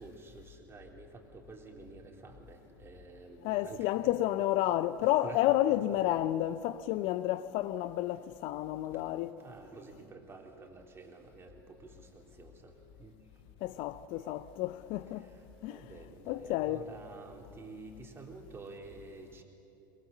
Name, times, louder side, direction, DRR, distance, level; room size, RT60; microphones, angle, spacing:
voice 1, 0.0-4.1 5.0-5.4 8.9-9.0 9.4-12.7 13.0-13.1 13.7-13.8 15.2-19.4, right 3 dB, 20° right, 3.7 m, -50 dB
voice 2, 3.4-9.4 13.6-15.2 15.6-15.8 16.3-16.8, left 14 dB, 55° left, 0.6 m, -31 dB
23.5 x 22.0 x 7.3 m
hypercardioid pair, 85°, 12 cm